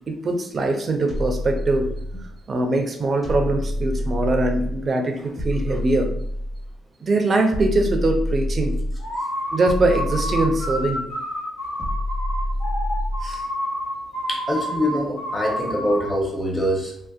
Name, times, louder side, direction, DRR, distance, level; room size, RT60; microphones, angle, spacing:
voice 1, 0.1-1.9 2.5-6.1 7.0-8.8 9.5-11.0 13.2-13.4, right 2 dB, 40° right, 4 dB, 0.4 m, -22 dB
sound 1, 1.1-2.4 3.2-4.9 5.4-6.8 7.5-9.1 9.6-11.0 11.8-13.4, left 1 dB, 30° left, 1.1 m, -27 dB
sound 2, 9.0-16.2, equal, 80° left, 1.2 m, -29 dB
voice 2, 14.3-16.9, equal, 15° left, 0 dB, 0.7 m, -24 dB
2.6 x 2.0 x 2.3 m, 0.69 s
cardioid pair, 90°, 0 cm